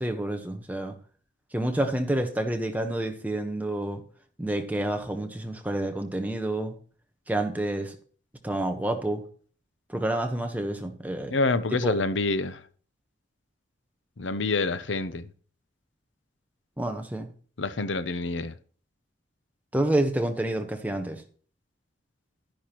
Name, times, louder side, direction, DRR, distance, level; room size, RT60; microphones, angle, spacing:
voice 1, 0.0-0.9 1.5-4.0 4.4-6.7 7.3-8.0 8.4-9.2 9.9-11.3 11.8-12.0 16.8-17.3 19.7-21.2, right 1 dB, 10° right, 1.1 m, -28 dB
voice 2, 11.3-12.6 14.2-15.3 17.6-18.5, left 3 dB, 75° left, 0.7 m, -27 dB
12.0 x 10.5 x 3.0 m
head